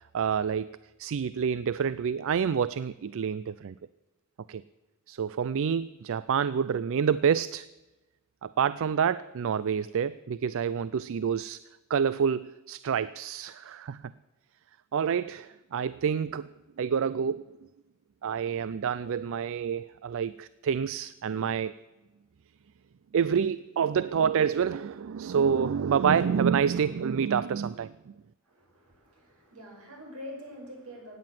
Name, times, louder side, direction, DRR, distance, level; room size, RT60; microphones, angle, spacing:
voice 1, 0.1-3.7 4.5-4.6 5.1-7.7 8.4-11.6 11.9-14.0 14.9-16.5 16.8-17.4 18.2-21.7 23.1-27.9, right 7 dB, 65° right, 0.4 m, -28 dB
voice 2, 28.4-31.2, left 1 dB, 85° right, 5.3 m, -45 dB
16.0 x 9.6 x 7.6 m
head